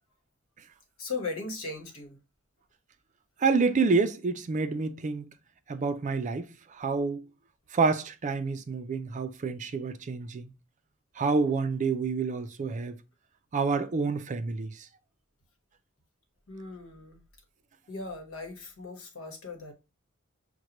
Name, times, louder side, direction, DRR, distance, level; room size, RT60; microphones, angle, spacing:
voice 1, 1.0-2.2 16.5-17.2 17.9-19.7, left 3 dB, 70° left, 1.1 m, -38 dB
voice 2, 3.4-5.3 5.7-7.3 7.7-10.5 11.2-13.0 13.5-14.9, right 4 dB, 35° right, 0.4 m, -28 dB
6.3 x 2.2 x 2.9 m
head